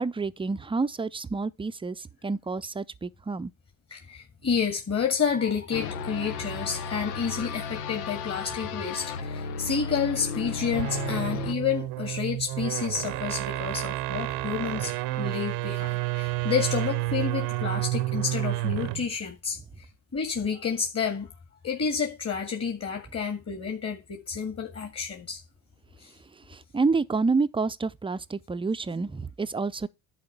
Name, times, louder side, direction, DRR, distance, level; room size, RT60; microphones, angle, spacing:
voice 1, 0.0-3.5 26.5-29.9, right 4 dB, 10° right, 0.5 m, -28 dB
voice 2, 3.9-19.6 20.1-21.3 21.6-25.4 26.0-26.1, left 6 dB, 30° left, 2.0 m, -30 dB
sound 1, 5.7-11.5, left 5 dB, 90° left, 0.9 m, -34 dB
sound 2, 10.6-19.1, right 18 dB, 65° right, 0.8 m, -30 dB
10.5 x 4.3 x 6.8 m
hypercardioid pair, 75°, 45 cm